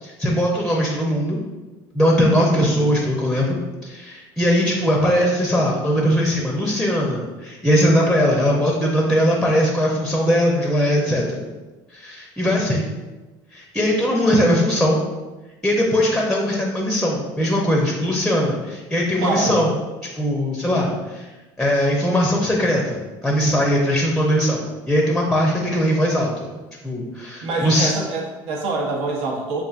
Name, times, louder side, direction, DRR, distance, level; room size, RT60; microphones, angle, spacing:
voice 1, 0.0-1.4 1.9-3.6 3.8-11.4 11.9-12.9 13.5-15.0 15.6-19.7 20.1-21.3 21.6-26.5 26.8-27.9, equal, 5° left, -1 dB, 0.6 m, -20 dB
voice 2, 2.3-2.9 19.2-19.7 27.4-29.6, right 3 dB, 65° right, -1 dB, 0.8 m, -26 dB
5.4 x 2.5 x 2.4 m, 1.2 s
supercardioid pair, 110°, 11 cm